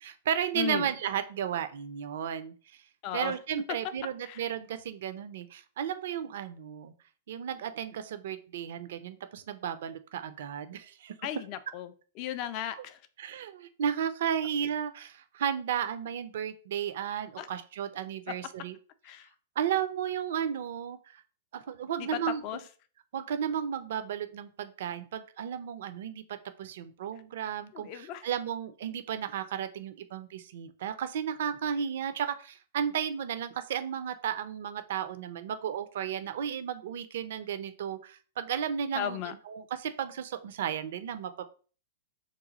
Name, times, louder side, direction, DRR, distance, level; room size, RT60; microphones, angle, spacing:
voice 1, 0.0-2.5 3.1-6.9 7.3-11.1 12.7-12.8 13.2-18.8 19.6-21.2 21.5-22.4 23.1-26.2 26.6-39.2 39.5-41.5, right 8 dB, 60° right, 11 dB, 0.4 m, -34 dB
voice 2, 0.5-0.9 3.0-3.4 3.7-3.8 4.2-4.4 11.2-13.0 17.4-17.5 18.3-18.4 19.0-19.3 22.0-22.6 27.7-28.3 38.9-39.3, left 10 dB, 40° left, 12 dB, 0.4 m, -36 dB
3.0 x 2.3 x 3.8 m, 0.39 s
figure-of-eight pair, 105°, 0 cm